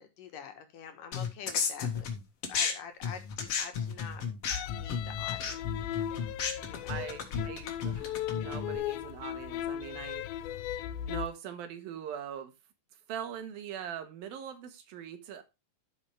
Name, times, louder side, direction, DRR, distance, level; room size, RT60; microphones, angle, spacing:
voice 1, 0.0-2.1 2.5-4.2 4.7-5.6 6.7-7.0, left 7 dB, 70° left, 6 dB, 2.9 m, -46 dB
sound 1, 1.1-2.7 3.0-8.8, left 6 dB, 50° left, 2.3 m, -33 dB
sound 2, 4.5-11.3, left 11 dB, 90° left, 2.5 m, -37 dB
voice 2, 6.9-10.3 10.7-12.5 13.1-15.4, right 9 dB, 80° right, 7 dB, 3.4 m, -42 dB
12.5 x 5.9 x 3.4 m, 0.24 s
omnidirectional pair, 4.1 m